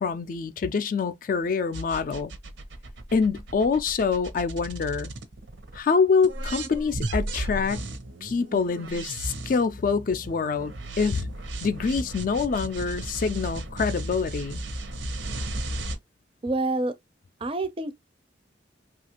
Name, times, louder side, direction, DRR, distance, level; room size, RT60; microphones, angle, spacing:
voice 1, 0.0-2.3 3.1-5.1 5.7-7.8 8.2-11.3 11.6-14.6, left 5 dB, 45° left, 0.3 m, -25 dB
sound 1, 1.7-5.8 6.2-16.0, right 1 dB, 80° right, 0.7 m, -35 dB
voice 2, 16.4-17.0 17.4-17.9, right 2 dB, 30° right, 0.4 m, -27 dB
3.2 x 2.4 x 2.8 m
head